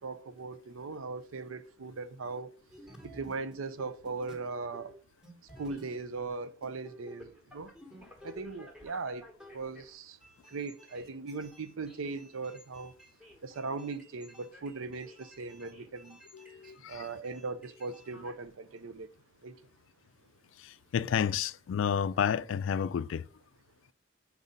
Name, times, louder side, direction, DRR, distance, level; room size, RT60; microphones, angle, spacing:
voice 1, 0.0-2.6 3.0-4.9 5.6-7.7 8.2-9.3 9.5-10.2 10.5-13.0 13.4-16.2 16.6-19.1 19.4-19.6, right 4 dB, 80° right, 0.5 m, -39 dB
sound 1, 2.7-4.5 4.7-4.9 5.2-6.3 6.6-18.5 18.8-18.9, equal, 5° right, 1.0 m, -53 dB
voice 2, 16.3-17.1 20.6-23.3, left 8 dB, 70° left, 0.3 m, -31 dB
4.8 x 4.1 x 5.0 m
head